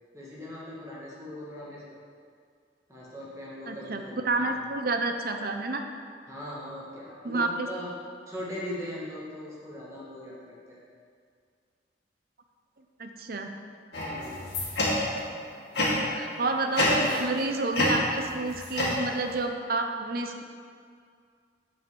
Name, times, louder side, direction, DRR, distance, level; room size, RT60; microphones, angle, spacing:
voice 1, 0.1-2.0 2.9-4.5 6.3-7.9 8.3-10.8 14.0-14.5 15.4-16.0 16.5-16.8, left 1 dB, 15° right, -6 dB, 2.1 m, -40 dB
voice 2, 3.7-5.8 7.2-7.7 13.0-13.5 16.1-20.4, right 2 dB, 55° right, 5 dB, 0.8 m, -30 dB
sound 1, 13.9-15.3 15.7-16.2 16.7-17.4 17.7-19.4, left 1 dB, 70° left, 2.5 m, -27 dB
7.8 x 5.7 x 7.1 m, 2.2 s
head